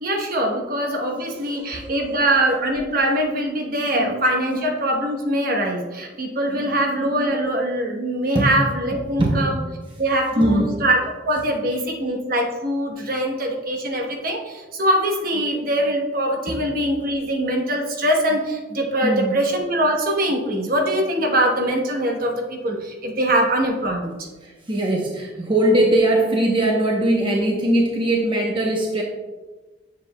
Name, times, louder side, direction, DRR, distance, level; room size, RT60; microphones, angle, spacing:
voice 1, 0.0-9.5 10.0-11.0 11.2-24.1, right 1 dB, 50° right, 1 dB, 1.0 m, -22 dB
voice 2, 1.4-2.1 3.9-4.2 6.4-6.8 8.3-8.5 9.2-9.5 10.3-10.8 19.0-19.4 24.4-29.0, right 1 dB, 25° right, -1 dB, 0.8 m, -21 dB
7.7 x 7.2 x 2.2 m, 1.2 s
head